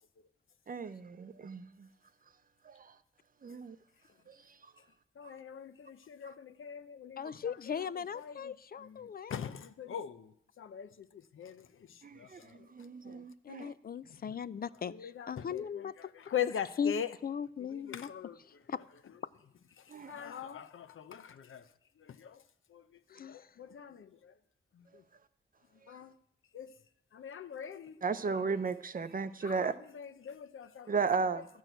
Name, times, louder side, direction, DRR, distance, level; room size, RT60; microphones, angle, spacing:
voice 1, 0.7-1.9 2.6-2.9 3.4-3.8 4.3-4.4 4.6-4.7 5.2-5.4 6.2-6.3 12.0-13.7 19.9-20.2 28.0-29.7 30.9-31.5, right 5 dB, 45° right, 0.6 m, -35 dB
voice 2, 5.2-7.9 8.1-8.5 8.8-9.0 9.3-10.3 10.6-12.6 13.0-13.2 14.9-17.1 17.7-18.4 20.0-21.6 22.0-22.4 22.7-22.8 23.1-24.3 24.8-24.9 25.9-26.1 26.5-26.7 27.1-28.0 28.2-28.4 29.4-30.9 31.3-31.4, left 8 dB, 80° left, 0.7 m, -42 dB
voice 3, 7.2-9.5 13.4-16.1 16.8-16.9 17.2-18.1 18.4-18.8 23.1-23.5, left 7 dB, 50° left, 0.4 m, -38 dB
12.0 x 6.3 x 9.0 m
wide cardioid pair, 115°, 20 cm